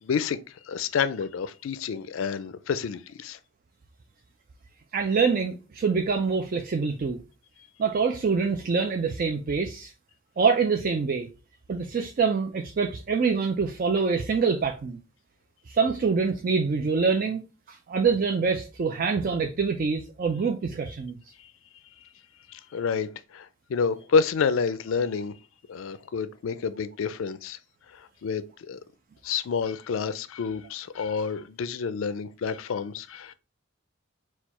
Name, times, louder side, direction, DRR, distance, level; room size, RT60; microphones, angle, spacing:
voice 1, 0.0-3.4 22.5-25.3 25.7-27.6 27.9-28.8 29.2-33.3, left 5 dB, 75° left, 0.4 m, -29 dB
voice 2, 4.9-7.2 7.8-9.9 10.4-11.3 11.7-15.0 15.7-17.4 17.7-21.2, right 5 dB, 45° right, 0.4 m, -25 dB
4.4 x 2.3 x 4.1 m
head